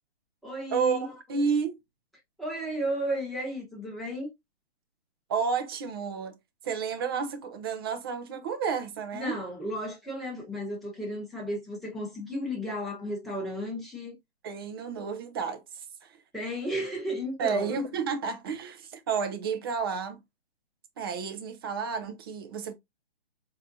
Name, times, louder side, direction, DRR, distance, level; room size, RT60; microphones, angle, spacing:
voice 1, 0.4-1.1 2.4-4.3 9.1-14.1 16.3-17.7, equal, ahead, 1.0 m, -33 dB
voice 2, 1.3-1.8 5.3-6.4 6.6-9.4 14.4-16.2 17.4-20.2 21.0-22.7, right 6 dB, 25° right, 0.5 m, -31 dB
4.1 x 2.7 x 2.6 m
hypercardioid pair, 140°, 31 cm